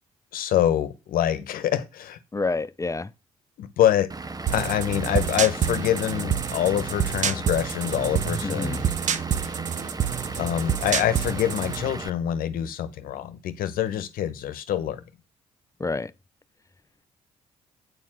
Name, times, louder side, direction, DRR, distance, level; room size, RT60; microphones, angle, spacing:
voice 1, 0.3-2.2 3.6-4.1 4.5-8.9 10.4-15.0, left 11 dB, 70° left, 1.1 m, -25 dB
voice 2, 2.3-3.1 8.4-8.8 15.8-16.1, left 3 dB, 20° left, 0.6 m, -28 dB
Vehicle / Engine, 4.1-12.1, right 3 dB, 25° right, 0.9 m, -35 dB
sound 1, 4.5-11.9, right 8 dB, 55° right, 0.8 m, -28 dB
8.5 x 4.5 x 7.4 m
hypercardioid pair, 50°, 15 cm